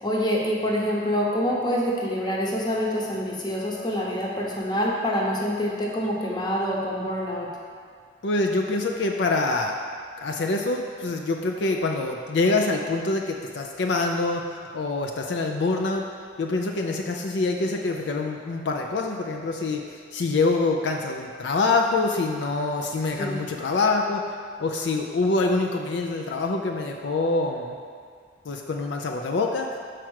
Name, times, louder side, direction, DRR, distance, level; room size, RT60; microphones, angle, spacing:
voice 1, 0.0-7.5 23.2-23.4, equal, 25° left, -3 dB, 0.9 m, -26 dB
voice 2, 8.2-9.7 10.2-16.0 16.4-19.8 20.1-27.7 28.5-29.7, left 3 dB, 70° left, 2 dB, 0.5 m, -25 dB
6.0 x 4.5 x 6.3 m, 2.1 s
head